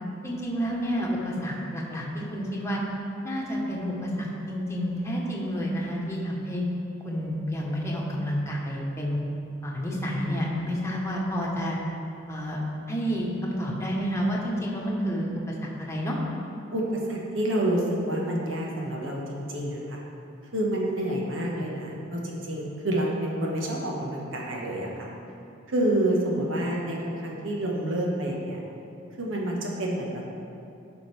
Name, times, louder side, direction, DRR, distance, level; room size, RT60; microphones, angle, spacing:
voice 1, 0.2-2.8 3.2-6.6 7.0-9.2 9.6-11.8 12.3-12.6 12.9-16.2, equal, 15° left, -3 dB, 1.2 m, -29 dB
voice 2, 16.7-20.0 20.5-25.1 25.7-28.6 29.2-30.4, right 1 dB, 90° right, -2 dB, 1.4 m, -28 dB
12.0 x 5.1 x 3.4 m, 2.7 s
head